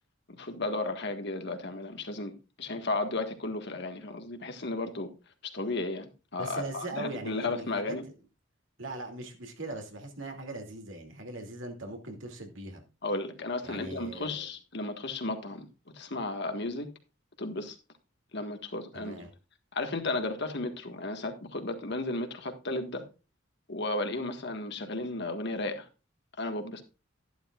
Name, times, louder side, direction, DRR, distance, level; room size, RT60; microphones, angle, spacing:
voice 1, 0.3-5.1 5.4-8.0 13.0-15.7 15.9-16.9 17.4-17.8 18.3-19.1 19.7-23.0 23.7-25.9 26.4-26.8, left 2 dB, 60° left, 1.7 m, -34 dB
voice 2, 6.4-7.9 8.8-12.8 13.6-14.4 18.9-19.3, right 2 dB, 75° right, 2.6 m, -40 dB
12.0 x 11.0 x 2.4 m
head